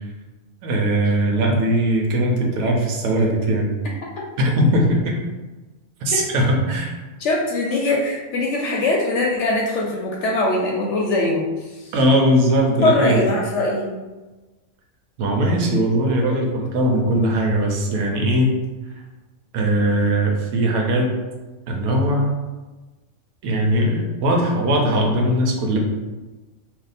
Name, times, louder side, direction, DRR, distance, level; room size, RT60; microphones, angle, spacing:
voice 1, 0.6-3.8 4.4-5.1 6.0-7.0 11.9-13.2 15.2-18.6 19.5-21.1 21.7-22.3 23.4-25.8, right 1 dB, 80° right, 0 dB, 1.1 m, -19 dB
voice 2, 7.2-11.9 12.8-13.9, left 2 dB, 65° left, -2 dB, 0.7 m, -22 dB
2.7 x 2.1 x 4.0 m, 1.2 s
omnidirectional pair, 1.5 m